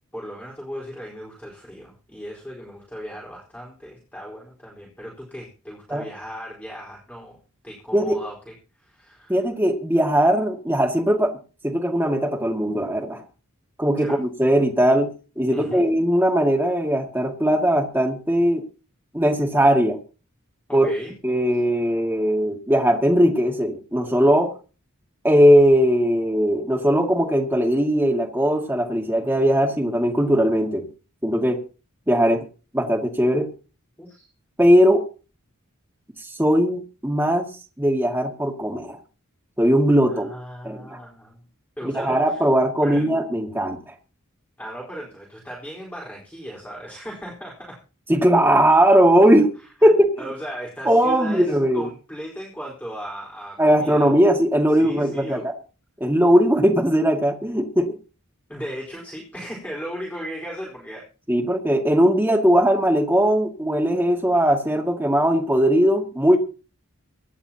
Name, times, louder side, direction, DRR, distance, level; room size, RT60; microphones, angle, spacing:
voice 1, 0.1-7.4 7.6-9.4 14.0-14.2 15.5-15.8 20.7-21.1 34.0-34.3 40.1-41.4 41.8-42.4 42.8-43.1 44.6-47.8 49.8-49.9 50.2-54.1 54.7-55.5 58.5-61.1, equal, 5° left, -3 dB, 4.3 m, -36 dB
voice 2, 9.3-11.4 11.6-13.2 13.8-18.6 19.1-20.0 20.7-20.9 21.2-24.5 25.2-30.8 31.2-31.6 32.1-32.4 32.7-33.5 34.6-35.0 36.4-37.5 37.8-39.0 39.6-40.3 40.6-41.0 41.8-43.9 48.1-49.5 49.8-50.1 50.9-51.8 53.6-55.5 56.0-58.0 61.3-66.4, equal, 10° right, 0 dB, 2.1 m, -19 dB
24.5 x 11.0 x 2.9 m, 0.35 s
head